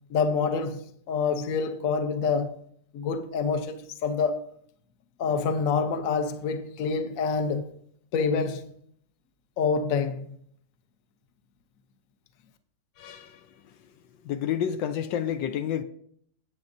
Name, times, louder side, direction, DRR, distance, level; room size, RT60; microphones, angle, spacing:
voice 1, 0.1-2.5 2.9-4.4 5.2-7.7 8.1-8.7 9.6-10.3, left 5 dB, 55° left, 1.1 m, -27 dB
voice 2, 13.0-13.4 14.2-15.8, left 9 dB, 75° left, 1.3 m, -29 dB
14.5 x 8.7 x 2.7 m
omnidirectional pair, 2.1 m